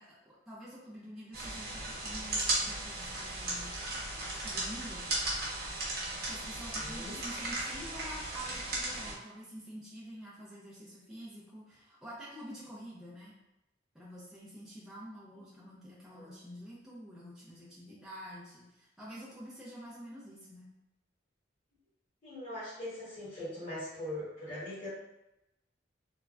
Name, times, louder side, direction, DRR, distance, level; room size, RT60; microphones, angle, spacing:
voice 1, 0.0-3.7 4.3-5.1 6.2-13.3 13.9-20.7, equal, 5° right, -8 dB, 0.5 m, -48 dB
sound 1, 1.3-9.1, right 2 dB, 55° right, 0.9 m, -36 dB
voice 2, 6.6-7.2 16.1-16.3 22.2-24.9, left 1 dB, 35° left, -15 dB, 1.3 m, -41 dB
3.3 x 2.1 x 2.4 m, 0.90 s
head